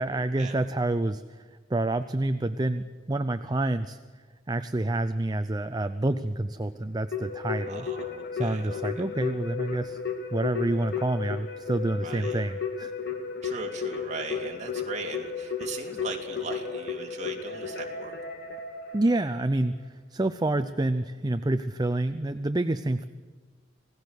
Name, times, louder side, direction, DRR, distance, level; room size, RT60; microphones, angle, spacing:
voice 1, 0.0-4.0 4.5-7.9 8.3-10.0 10.3-12.9 18.9-23.0, right 2 dB, 20° right, 10 dB, 0.6 m, -28 dB
Keyboard (musical), 7.1-19.6, left 5 dB, 60° left, 2.5 m, -34 dB
voice 2, 7.7-9.0 11.9-12.5 13.4-18.1, right 3 dB, 40° right, 1 dB, 2.7 m, -39 dB
27.0 x 18.0 x 6.5 m, 1.5 s
head